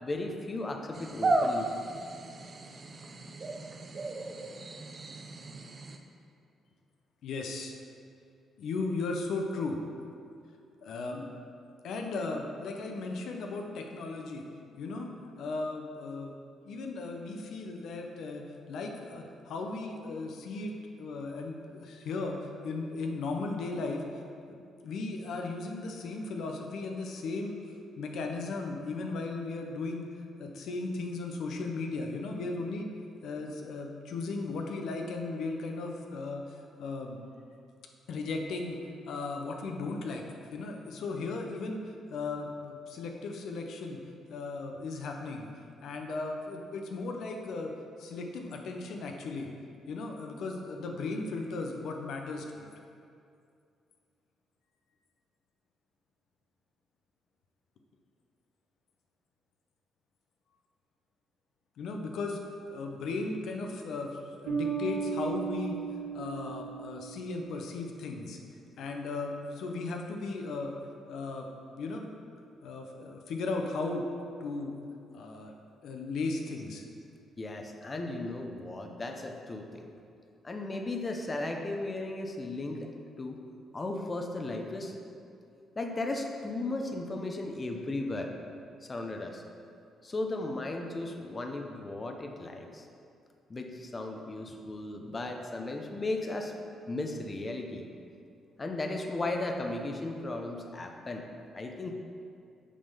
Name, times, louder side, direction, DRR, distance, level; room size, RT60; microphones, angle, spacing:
voice 1, 0.0-1.7 77.4-79.9 80.4-82.9 83.2-83.4 83.7-85.0 85.8-88.3 88.9-89.4 90.0-92.9 93.5-96.5 96.9-97.9 98.6-101.3 101.5-101.9, left 2 dB, 30° left, 3 dB, 0.7 m, -36 dB
sound 1, 0.9-6.0, right 2 dB, 40° right, 0.6 m, -34 dB
voice 2, 7.2-7.7 8.6-9.8 10.8-11.3 11.8-14.4 14.8-15.1 15.4-16.3 16.7-22.4 22.6-24.0 24.5-24.6 24.8-27.6 28.0-30.1 30.4-32.9 33.2-36.4 36.8-37.2 38.1-38.8 39.1-40.2 40.5-41.8 42.1-44.0 44.3-45.5 45.8-47.7 48.0-49.5 49.9-52.7 61.8-62.4 62.7-65.8 66.1-68.4 68.8-70.7 71.1-72.1 72.6-74.1 74.4-74.8 75.1-75.5 75.8-76.8, left 3 dB, 75° left, 2 dB, 0.7 m, -36 dB
sound 2, 64.5-67.8, right 6 dB, 75° right, 1.7 m, -36 dB
8.4 x 3.6 x 5.5 m, 2.4 s
cardioid pair, 90°, 0 cm